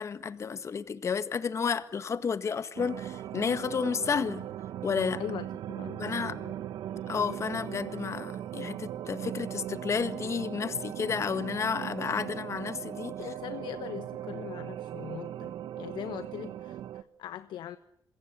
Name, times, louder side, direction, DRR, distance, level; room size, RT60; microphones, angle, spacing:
voice 1, 0.0-4.4 4.8-5.2 6.0-6.4 7.1-13.1, left 6 dB, 40° left, 1.7 m, -31 dB
sound 1, 2.8-17.0, right 11 dB, 80° right, 1.1 m, -39 dB
voice 2, 5.2-6.5 7.0-7.2 13.2-17.8, left 11 dB, 85° left, 1.1 m, -41 dB
27.0 x 22.0 x 8.8 m
cardioid pair, 115°, 8 cm